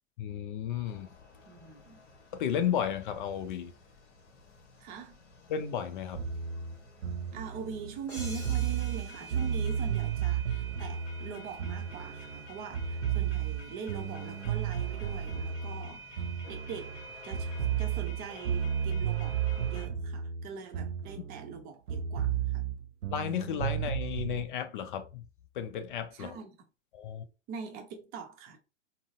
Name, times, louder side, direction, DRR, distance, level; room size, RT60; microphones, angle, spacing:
voice 1, 0.2-1.1 2.3-3.7 5.5-6.2 23.1-25.3 25.5-26.4 26.9-27.2, left 9 dB, 45° left, 0.5 m, -33 dB
sound 1, 0.9-19.9, right 1 dB, 65° left, 1.0 m, -49 dB
voice 2, 1.5-2.0 4.8-5.2 7.3-17.0 17.2-22.7 26.1-26.7 27.5-28.6, right 6 dB, 25° right, 0.6 m, -43 dB
sound 2, 6.1-12.5 12.7-17.0 17.3-21.6 21.9-24.4, right 8 dB, 75° right, 0.5 m, -33 dB
sound 3, 8.1-10.8, equal, 5° left, 1.1 m, -49 dB
3.8 x 2.0 x 2.4 m
figure-of-eight pair, 105°, 37 cm